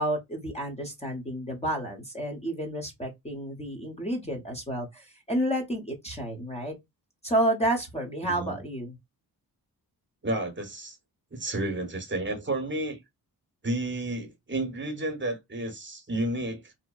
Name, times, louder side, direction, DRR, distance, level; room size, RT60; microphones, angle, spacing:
voice 1, 0.0-6.7 7.2-9.0, right 1 dB, 15° left, 0.8 m, -30 dB
voice 2, 8.2-8.6 10.2-11.0 11.3-13.0 13.6-16.7, right 1 dB, 30° right, 0.9 m, -31 dB
2.7 x 2.0 x 2.2 m
cardioid pair, 75°, 38 cm